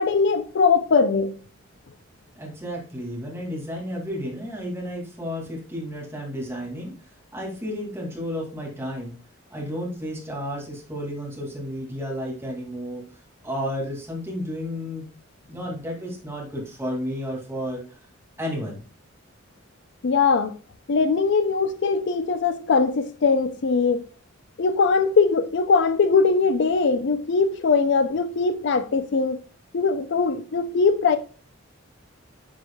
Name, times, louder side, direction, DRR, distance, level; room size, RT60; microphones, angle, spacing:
voice 1, 0.0-1.4 20.0-20.5 20.9-24.0 24.6-29.4 29.7-31.2, left 4 dB, 60° left, 0.4 m, -21 dB
voice 2, 2.4-6.9 7.3-9.2 9.5-13.0 13.4-15.1 15.5-17.8 18.4-18.8, equal, 10° right, 2.1 m, -32 dB
9.5 x 4.7 x 2.3 m
head